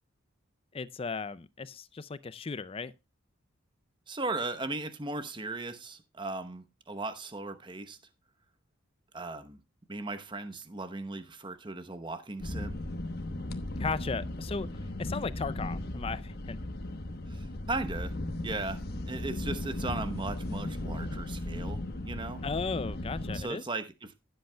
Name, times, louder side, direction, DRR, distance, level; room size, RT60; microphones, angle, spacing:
voice 1, 0.7-2.9 13.8-14.7 15.0-16.6 22.4-23.6, left 4 dB, 30° left, 0.4 m, -35 dB
voice 2, 4.1-8.0 9.1-9.6 9.9-12.8 17.3-18.1 18.4-18.8 19.1-22.4 23.3-24.1, right 2 dB, 25° right, 0.9 m, -37 dB
sound 1, 12.4-23.4, left 1 dB, 50° left, 1.1 m, -36 dB
16.0 x 7.8 x 2.2 m
head